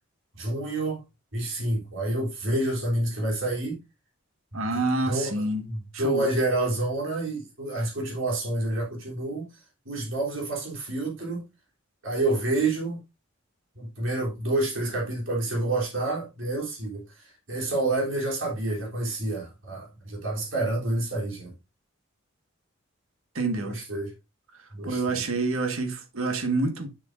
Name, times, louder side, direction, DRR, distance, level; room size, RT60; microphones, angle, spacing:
voice 1, 0.3-1.0 1.3-3.8 4.5-4.6 5.1-5.3 5.7-9.4 9.8-11.4 12.0-13.0 13.7-21.5 23.5-24.1 24.7-25.2, right 2 dB, 65° right, 3.2 m, -28 dB
voice 2, 4.5-5.6 6.0-6.2 23.3-23.8 24.8-26.9, right 3 dB, 80° right, 1.6 m, -27 dB
8.7 x 6.8 x 2.6 m
head